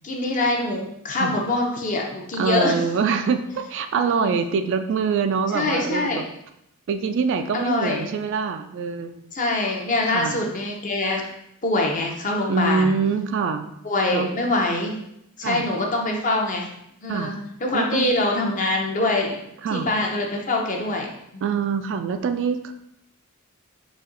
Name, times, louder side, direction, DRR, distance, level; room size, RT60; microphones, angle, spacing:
voice 1, 0.0-2.8 3.9-4.3 5.5-6.2 7.5-8.1 9.3-11.2 11.6-12.9 13.8-15.0 15.4-16.7 17.0-17.4 17.6-19.4 19.7-21.4, left 2 dB, 35° left, 1 dB, 0.7 m, -24 dB
voice 2, 2.4-6.2 6.9-9.2 10.1-10.4 12.5-13.7 14.1-14.3 15.4-15.6 17.1-17.3 17.7-18.1 19.6-19.9 21.4-22.7, right 5 dB, 55° right, 9 dB, 0.3 m, -24 dB
4.1 x 2.8 x 3.9 m, 0.78 s
head